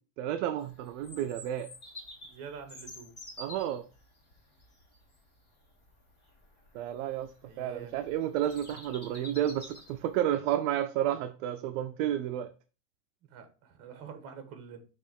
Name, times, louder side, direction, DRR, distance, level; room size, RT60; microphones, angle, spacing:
voice 1, 0.2-1.7 3.4-3.8 6.7-7.3 7.6-12.5, right 11 dB, 55° right, 0.6 m, -31 dB
Bird vocalization bird call bird song, 0.6-10.2, left 1 dB, 25° left, 2.0 m, -50 dB
voice 2, 2.2-3.1 7.4-7.9 13.2-14.8, right 6 dB, 35° right, 1.4 m, -46 dB
6.7 x 3.1 x 5.2 m
supercardioid pair, 165°, 45 cm